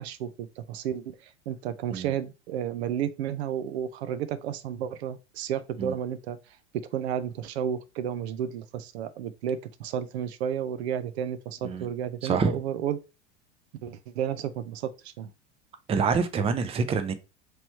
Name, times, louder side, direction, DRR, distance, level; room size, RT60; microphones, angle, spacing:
voice 1, 0.0-6.4 6.9-13.0 13.8-15.3, right 9 dB, 65° right, 0.5 m, -32 dB
voice 2, 12.2-12.6 15.9-17.1, right 5 dB, 15° right, 0.5 m, -26 dB
3.1 x 3.0 x 4.3 m
hypercardioid pair, 85°, 34 cm